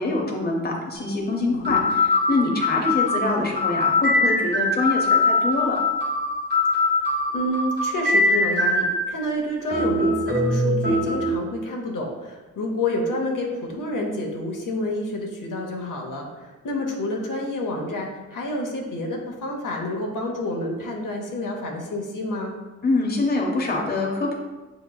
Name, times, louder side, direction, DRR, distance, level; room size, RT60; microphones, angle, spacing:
voice 1, 0.0-5.8 22.8-24.3, left 2 dB, 30° left, -1 dB, 0.7 m, -25 dB
sound 1, 1.0-1.1 1.6-9.2 9.7-11.4, left 2 dB, 30° right, 1.2 m, -22 dB
voice 2, 1.5-1.9 4.5-4.8 6.9-22.6, left 1 dB, 75° left, 0 dB, 0.8 m, -29 dB
7.3 x 2.9 x 2.2 m, 1.2 s
wide cardioid pair, 140°, 32 cm